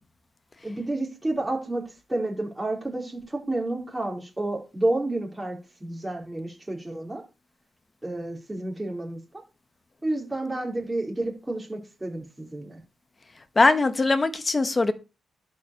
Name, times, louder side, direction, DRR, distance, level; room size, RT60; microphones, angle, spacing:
voice 1, 0.6-1.8 2.1-7.2 8.0-9.2 10.0-12.8, right 2 dB, 15° right, 4.2 m, -30 dB
voice 2, 13.5-14.9, left 3 dB, 25° left, 1.5 m, -21 dB
11.5 x 5.1 x 7.0 m
cardioid pair, 105°, 0 cm